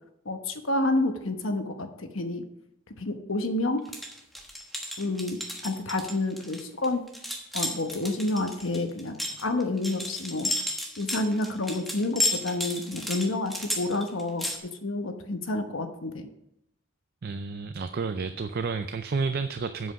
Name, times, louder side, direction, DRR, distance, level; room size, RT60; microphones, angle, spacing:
voice 1, 0.2-2.4 3.0-3.8 5.0-7.0 7.5-10.5 11.0-16.3, left 2 dB, 65° left, 6 dB, 1.1 m, -29 dB
sound 1, 3.9-14.6, left 1 dB, ahead, 1.2 m, -32 dB
voice 2, 17.2-19.9, right 4 dB, 45° right, 9 dB, 0.4 m, -30 dB
8.0 x 7.6 x 5.8 m, 0.81 s
head